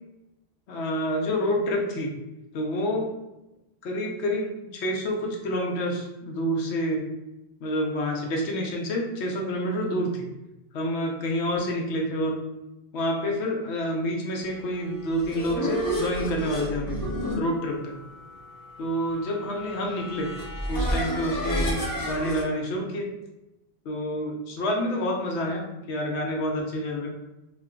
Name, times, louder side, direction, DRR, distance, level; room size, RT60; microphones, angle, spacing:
voice 1, 0.7-2.1 2.5-3.1 3.8-7.0 7.6-10.3 10.7-12.4 12.9-17.0 17.3-17.9 18.8-20.3 20.7-23.1 23.8-25.6 25.9-27.1, equal, 85° left, 0 dB, 1.0 m, -28 dB
sound 1, 14.9-22.4, equal, 25° left, 0.5 m, -31 dB
2.5 x 2.2 x 3.6 m, 0.94 s
omnidirectional pair, 1.1 m